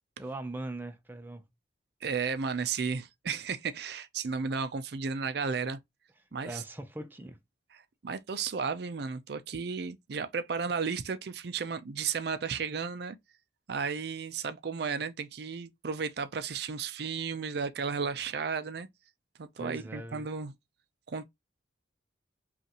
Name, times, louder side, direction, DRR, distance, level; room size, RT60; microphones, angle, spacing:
voice 1, 0.2-1.4 6.4-7.4 19.6-20.3, right 2 dB, 10° right, 0.5 m, -40 dB
voice 2, 2.0-5.8 6.3-6.6 7.7-13.2 13.7-18.9 19.4-20.5 21.1-21.3, right 5 dB, 60° right, 0.5 m, -34 dB
5.3 x 2.5 x 2.9 m
head